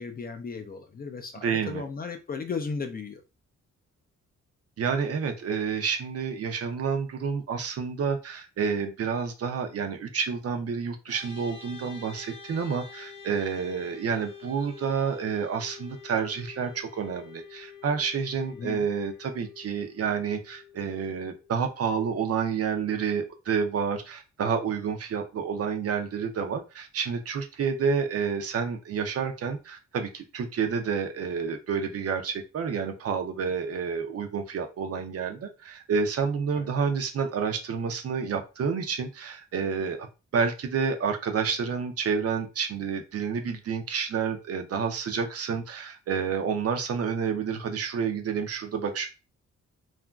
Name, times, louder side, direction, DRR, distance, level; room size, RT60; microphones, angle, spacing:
voice 1, 0.0-3.2 18.5-18.8 36.5-36.7, left 5 dB, 30° left, 6 dB, 0.4 m, -35 dB
voice 2, 1.4-1.8 4.8-40.0 40.3-49.1, right 6 dB, 55° right, 6 dB, 0.5 m, -29 dB
sound 1, 11.1-22.5, left 6 dB, 80° left, 0.8 m, -48 dB
2.8 x 2.4 x 2.3 m, 0.30 s
cardioid pair, 110°, 30 cm